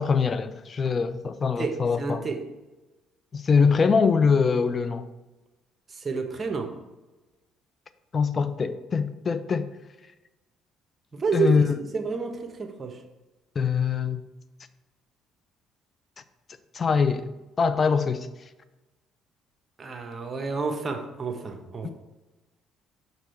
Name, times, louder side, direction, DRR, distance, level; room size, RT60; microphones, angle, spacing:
voice 1, 0.0-2.2 3.3-5.0 8.1-9.7 11.3-11.8 13.6-14.2 16.7-17.3 17.6-18.3 21.8-21.9, left 5 dB, 40° left, 0.6 m, -23 dB
voice 2, 1.6-2.4 5.9-6.7 11.1-13.0 19.8-21.9, right 5 dB, 35° right, 1.2 m, -30 dB
6.4 x 4.8 x 4.5 m
hypercardioid pair, 60°, 0 cm